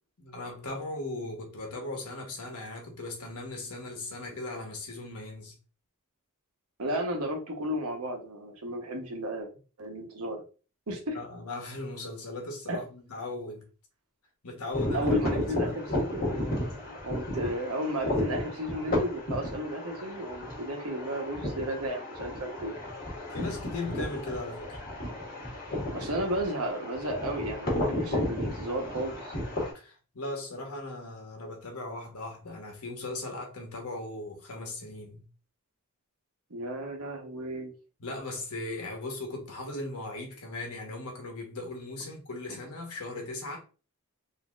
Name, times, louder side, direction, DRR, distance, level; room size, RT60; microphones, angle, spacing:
voice 1, 0.2-5.5 11.1-13.6 14.4-15.7 23.3-24.8 29.7-35.2 38.0-43.6, left 2 dB, 85° left, 1.1 m, -38 dB
voice 2, 6.8-9.5 9.8-10.4 10.9-11.2 12.7-12.8 14.9-22.7 25.9-29.4 36.5-37.7 42.5-42.6, equal, 75° right, 1.0 m, -33 dB
sound 1, 14.7-29.7, left 1 dB, 45° left, 1.5 m, -33 dB
4.0 x 2.7 x 2.4 m
head